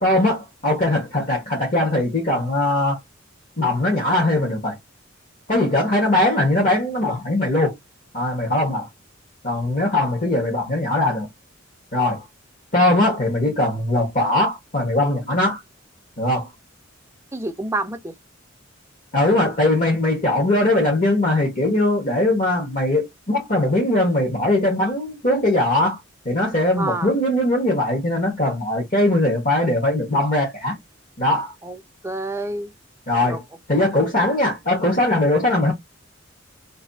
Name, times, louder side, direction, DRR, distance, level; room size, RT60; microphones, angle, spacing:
voice 1, 0.0-3.0 3.6-4.8 5.5-7.7 8.1-8.9 9.4-11.3 11.9-12.2 12.7-15.6 16.2-16.5 19.1-26.0 26.2-30.8 31.2-31.5 33.1-33.4 33.7-35.7, left 1 dB, 40° left, 1.6 m, -20 dB
voice 2, 17.3-18.1 26.8-27.1 31.6-32.7 33.3-33.4, right 2 dB, 15° right, 0.5 m, -28 dB
3.3 x 2.6 x 4.1 m
head